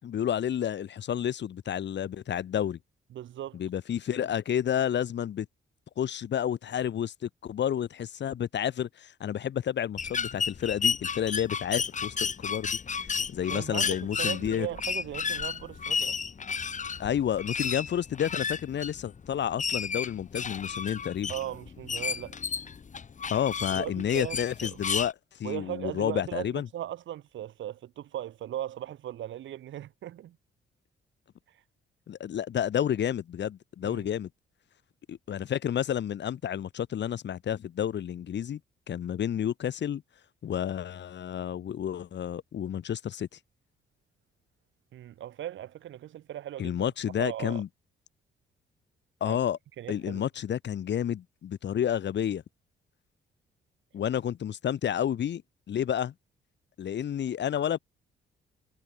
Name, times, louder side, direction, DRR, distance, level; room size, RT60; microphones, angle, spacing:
voice 1, 0.0-2.8 3.5-5.5 6.0-12.8 13.3-14.7 17.0-21.3 23.3-25.1 25.4-26.7 32.1-34.3 35.1-38.6 38.9-40.0 40.4-43.3 46.6-47.7 49.2-49.6 49.9-52.4 53.9-55.4 55.7-56.1 56.8-57.8, left 9 dB, 65° left, 3.9 m, -30 dB
voice 2, 3.1-3.6 13.2-16.2 21.3-22.4 23.7-24.7 25.4-30.4 33.8-34.1 44.9-46.8 47.2-47.6 49.3-49.4 49.8-50.2, right 12 dB, 75° right, 3.6 m, -38 dB
sound 1, 10.0-25.1, left 6 dB, 40° left, 1.3 m, -32 dB
supercardioid pair, 60°, 20 cm